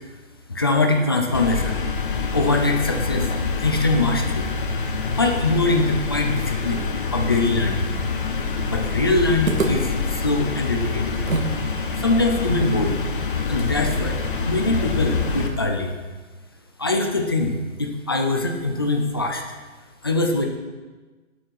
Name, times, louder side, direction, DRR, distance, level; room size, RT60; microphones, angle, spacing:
voice 1, 0.5-1.8 2.3-3.3 3.6-4.5 5.2-6.9 7.1-8.0 8.6-11.2 12.0-13.0 13.5-14.2 14.5-15.9 16.8-19.4 20.0-20.4, left 2 dB, 20° left, 3 dB, 0.6 m, -22 dB
sound 1, 1.3-15.5, left 4 dB, 40° left, 1.3 m, -26 dB
sound 2, 9.5-11.6 11.9-12.0 12.5-15.7, right 3 dB, 85° right, 2.2 m, -31 dB
17.0 x 6.4 x 4.7 m, 1.3 s
hypercardioid pair, 165°, 39 cm